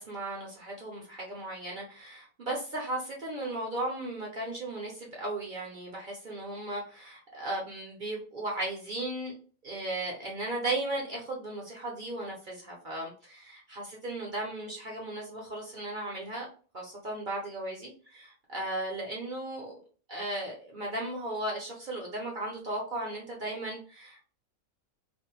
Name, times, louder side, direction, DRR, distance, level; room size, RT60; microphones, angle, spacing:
voice 1, 0.0-9.3 9.6-16.5 16.7-19.8 20.1-24.3, right 2 dB, 50° right, -2 dB, 0.6 m, -36 dB
2.5 x 2.1 x 2.9 m, 0.39 s
omnidirectional pair, 1.5 m